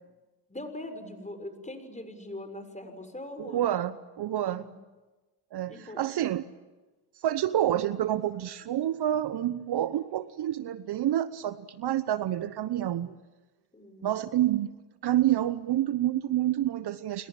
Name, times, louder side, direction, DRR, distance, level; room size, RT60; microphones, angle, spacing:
voice 1, 0.5-3.7 4.4-4.8 5.7-6.0 13.7-14.4, left 1 dB, 15° left, 7 dB, 6.6 m, -42 dB
voice 2, 3.4-4.7 5.5-6.4 7.2-13.1 14.0-14.7 15.0-17.3, right 12 dB, 50° right, 15 dB, 1.0 m, -28 dB
28.5 x 23.0 x 7.6 m, 1.2 s
hypercardioid pair, 55°, 49 cm